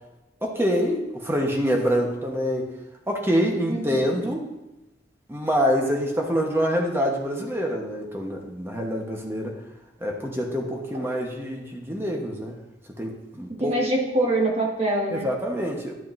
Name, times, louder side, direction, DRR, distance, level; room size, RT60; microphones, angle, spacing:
voice 1, 0.4-2.7 3.1-4.5 5.3-9.5 10.0-12.5 13.0-13.7 15.1-15.9, equal, 15° right, 1 dB, 1.1 m, -26 dB
voice 2, 3.7-4.1 13.6-15.3, right 2 dB, 35° right, -1 dB, 1.5 m, -24 dB
12.0 x 6.7 x 2.6 m, 0.99 s
head